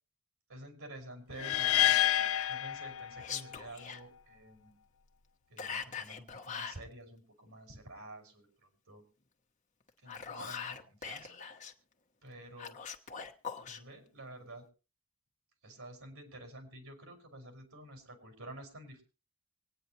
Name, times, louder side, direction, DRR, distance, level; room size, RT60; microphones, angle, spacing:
voice 1, 0.5-2.0 2.5-4.8 5.5-8.5 8.9-9.0 10.0-11.4 12.2-12.8 13.5-14.7 15.6-19.0, right 1 dB, 85° right, 5 dB, 5.7 m, -50 dB
sound 1, 1.4-3.5, left 12 dB, 85° left, 0.7 m, -29 dB
Whispering, 1.8-2.6 3.2-4.0 5.6-6.8 9.9-11.7 12.6-13.8, left 6 dB, 35° left, 1.4 m, -42 dB
25.5 x 9.6 x 3.0 m, 0.33 s
head